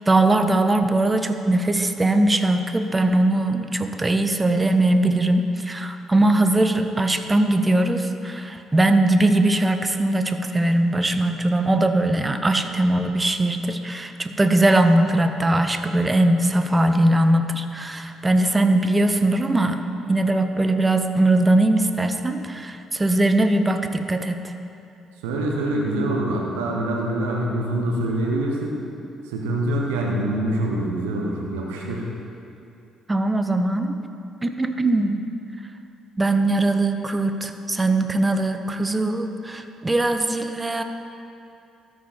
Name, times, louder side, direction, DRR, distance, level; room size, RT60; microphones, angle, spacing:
voice 1, 0.0-19.8 20.1-24.5 33.1-33.9 34.4-35.2 36.2-40.8, right 2 dB, 20° right, 7 dB, 0.7 m, -20 dB
voice 2, 25.2-28.7 29.2-32.1, right 1 dB, 80° right, -2 dB, 0.9 m, -25 dB
13.5 x 4.9 x 4.2 m, 2.6 s
hypercardioid pair, 50°, 0 cm